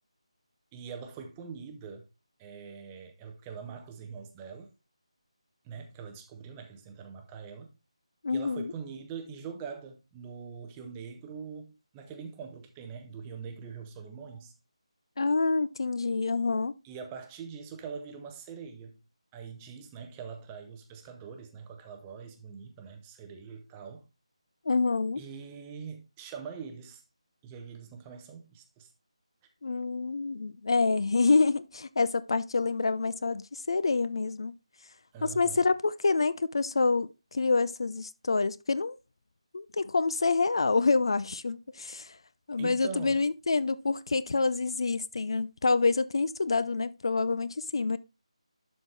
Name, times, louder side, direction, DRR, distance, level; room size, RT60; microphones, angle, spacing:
voice 1, 0.7-2.1 2.4-4.7 5.6-7.7 8.3-14.5 16.8-19.0 19.3-24.1 25.2-27.0 27.4-28.9 35.1-35.6 42.6-43.2, right 6 dB, 10° right, 0.6 m, -43 dB
voice 2, 8.2-8.7 15.2-16.7 24.7-25.2 29.6-34.5 35.2-39.0 39.5-42.2 42.5-48.0, left 4 dB, 50° left, 0.4 m, -27 dB
11.5 x 4.2 x 3.3 m
figure-of-eight pair, 175°, 3 cm